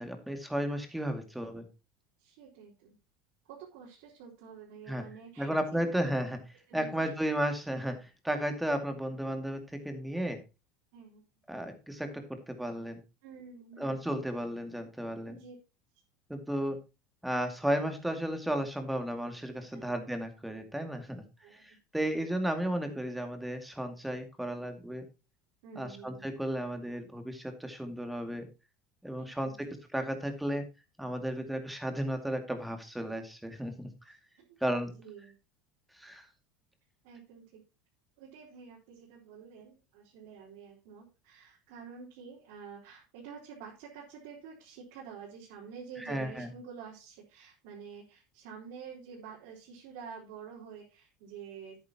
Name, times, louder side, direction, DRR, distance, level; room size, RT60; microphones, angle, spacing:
voice 1, 0.0-1.7 4.9-5.0 5.4-6.4 6.7-10.4 11.5-13.0 13.8-15.4 16.3-16.8 17.2-21.2 21.5-25.0 25.8-28.4 29.0-30.7 31.0-34.2 34.6-34.9 36.0-36.3 46.0-46.5, equal, 5° right, 6 dB, 2.3 m, -34 dB
voice 2, 2.2-3.0 3.4-6.1 6.7-7.1 10.9-11.2 13.2-14.1 15.3-15.5 19.7-20.0 21.4-21.6 25.6-26.3 29.2-29.6 34.1-34.6 34.9-35.3 37.0-37.6 38.2-51.8, right 6 dB, 75° right, -5 dB, 4.0 m, -49 dB
11.0 x 9.3 x 2.9 m, 0.28 s
supercardioid pair, 120°, 0 cm